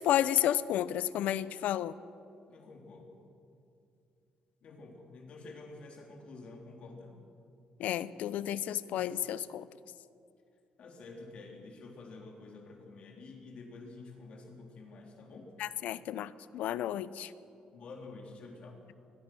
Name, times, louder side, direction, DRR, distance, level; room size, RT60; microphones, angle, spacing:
voice 1, 0.0-1.9 7.8-9.7 15.6-17.3, left 11 dB, 80° left, 16 dB, 0.7 m, -31 dB
voice 2, 2.5-3.2 4.6-7.2 10.8-15.5 17.7-18.8, left 3 dB, 50° left, 1 dB, 3.5 m, -49 dB
23.5 x 21.0 x 6.2 m, 2.5 s
cardioid pair, 160°, 2 cm